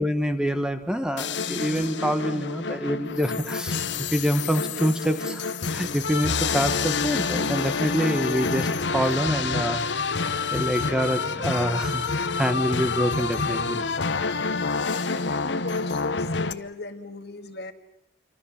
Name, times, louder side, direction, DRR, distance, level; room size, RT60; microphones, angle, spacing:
voice 1, 0.0-9.8 10.1-13.8, equal, 5° right, 8 dB, 1.3 m, -26 dB
sound 1, 1.2-16.5, left 4 dB, 80° left, 1.1 m, -28 dB
voice 2, 14.6-17.7, left 3 dB, 60° left, 7 dB, 1.9 m, -37 dB
27.0 x 24.5 x 7.2 m, 0.79 s
head